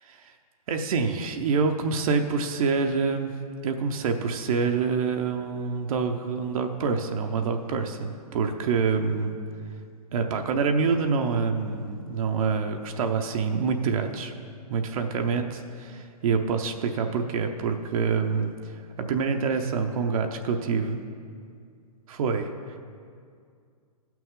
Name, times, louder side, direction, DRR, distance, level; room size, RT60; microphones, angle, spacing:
voice 1, 0.7-3.3 3.6-9.3 10.1-14.3 14.7-15.4 15.8-21.0 22.1-22.5, right 5 dB, 60° right, 4 dB, 0.8 m, -26 dB
16.0 x 6.0 x 3.7 m, 2.2 s
hypercardioid pair, 135°, 20 cm